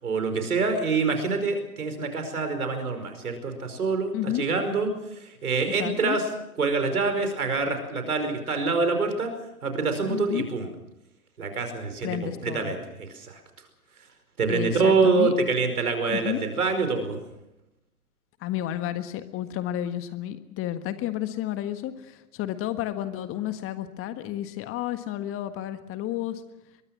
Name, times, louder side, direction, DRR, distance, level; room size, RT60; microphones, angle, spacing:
voice 1, 0.0-6.2 6.6-9.3 9.6-10.7 11.4-13.4 14.4-17.2, right 4 dB, 75° right, 7 dB, 5.0 m, -26 dB
voice 2, 4.1-4.4 5.8-6.2 10.1-10.5 12.0-12.7 14.5-15.3 16.1-16.4 18.4-26.4, left 12 dB, 30° left, 10 dB, 1.6 m, -31 dB
23.0 x 23.0 x 6.1 m, 0.88 s
figure-of-eight pair, 105°, 45 cm